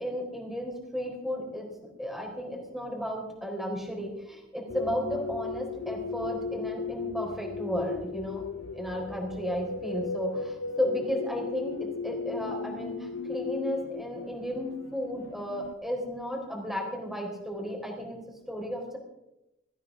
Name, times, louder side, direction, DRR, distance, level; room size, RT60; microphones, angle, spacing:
voice 1, 0.0-1.7 2.0-8.4 8.7-11.8 12.0-18.2 18.5-19.0, equal, ahead, 0 dB, 4.0 m, -33 dB
sound 1, 4.7-15.7, left 4 dB, 90° left, 0.8 m, -36 dB
20.5 x 14.5 x 3.7 m, 0.90 s
head